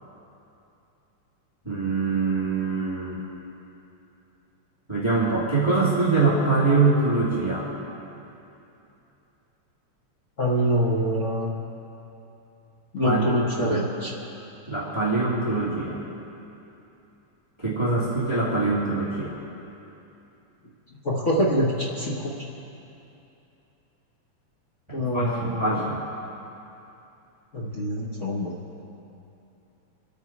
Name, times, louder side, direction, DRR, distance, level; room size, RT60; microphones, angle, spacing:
voice 1, 1.6-3.2 4.9-7.7 13.0-13.8 14.7-16.0 17.6-19.4 24.9-26.0, right 3 dB, 10° right, -8 dB, 2.2 m, -24 dB
voice 2, 10.4-11.6 12.9-14.1 21.0-22.4 24.9-25.9 27.5-28.5, equal, 55° left, -5 dB, 0.8 m, -25 dB
27.0 x 9.0 x 4.6 m, 2.9 s
omnidirectional pair, 3.5 m